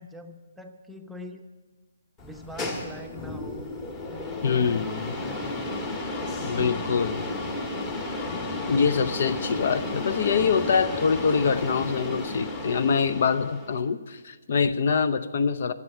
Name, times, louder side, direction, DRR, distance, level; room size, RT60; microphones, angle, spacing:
voice 1, 0.0-1.4 2.2-3.8 4.1-5.7, equal, 5° right, 4 dB, 0.8 m, -44 dB
sound 1, 2.2-13.8, left 2 dB, 20° left, 1.5 m, -33 dB
voice 2, 4.4-5.1 6.4-7.2 8.7-15.7, left 5 dB, 50° left, 14 dB, 0.7 m, -24 dB
13.5 x 8.1 x 9.7 m, 1.4 s
figure-of-eight pair, 135°, 0 cm